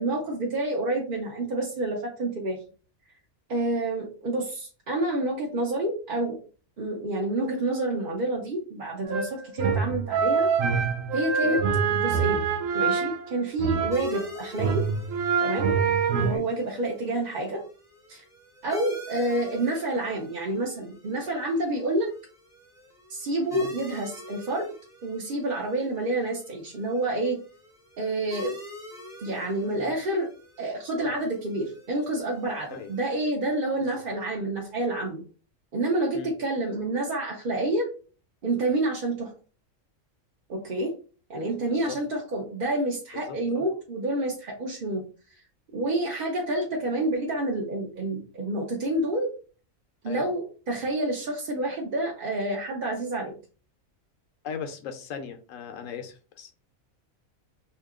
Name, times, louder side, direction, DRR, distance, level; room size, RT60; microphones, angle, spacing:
voice 1, 0.0-2.6 3.5-6.4 6.8-10.5 11.1-11.6 11.9-12.5 12.7-14.9 15.4-15.7 16.2-17.6 18.1-18.2 18.6-22.1 23.1-24.7 25.0-27.4 28.0-28.6 29.2-30.3 30.6-35.2 35.7-37.9 38.4-39.3 40.5-40.9 41.3-45.0 45.7-49.3 50.0-53.3, right 2 dB, 45° right, 0.8 m, -28 dB
sound 1, 9.1-14.3 14.6-16.4, right 6 dB, 80° right, 1.0 m, -25 dB
sound 2, 13.9-33.1, left 1 dB, 5° right, 0.6 m, -45 dB
voice 2, 43.2-43.6 50.0-50.3 54.4-56.6, left 7 dB, 75° left, 1.0 m, -38 dB
2.8 x 2.7 x 3.5 m
omnidirectional pair, 1.4 m